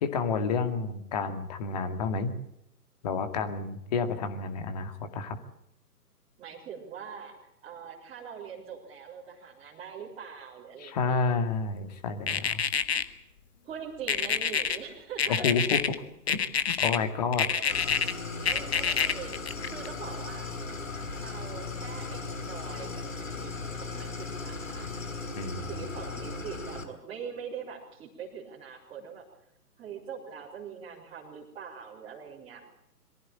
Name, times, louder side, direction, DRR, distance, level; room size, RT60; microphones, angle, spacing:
voice 1, 0.0-2.3 3.0-5.4 10.8-12.6 15.3-16.0 16.3-16.4 16.8-17.5 25.3-25.8, left 5 dB, 25° left, 8 dB, 2.2 m, -30 dB
voice 2, 6.4-7.3 7.6-11.3 13.6-15.5 17.5-17.8 18.4-20.5 21.2-24.9 25.7-29.2 29.8-32.6, right 7 dB, 10° right, -7 dB, 4.1 m, -43 dB
sound 1, 12.3-13.0 14.1-14.8 15.2-16.0 16.3-17.0 17.3-18.1 18.5-19.9, left 7 dB, 40° left, 1.6 m, -26 dB
Idling, 17.7-26.8, left 3 dB, 55° left, 5.8 m, -37 dB
23.0 x 15.5 x 8.7 m, 0.80 s
figure-of-eight pair, 140°, 46 cm